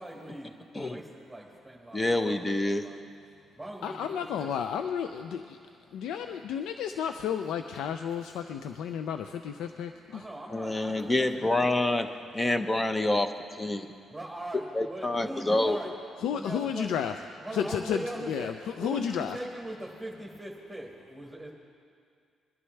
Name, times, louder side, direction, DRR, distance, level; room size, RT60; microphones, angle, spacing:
voice 1, 0.0-3.1 3.6-4.5 5.9-6.6 9.5-9.7 10.1-11.5 13.8-15.9 16.3-16.9 17.4-21.5, right 1 dB, 5° right, -5 dB, 1.9 m, -41 dB
voice 2, 1.9-2.9 10.5-12.1 12.3-13.9 14.7-15.9, left 2 dB, 20° left, 8 dB, 0.8 m, -27 dB
voice 3, 3.8-5.6 5.9-10.3 16.2-17.1 17.5-19.4, left 8 dB, 85° left, 7 dB, 0.4 m, -32 dB
21.5 x 11.0 x 3.3 m, 2.3 s
cardioid pair, 90°, 0 cm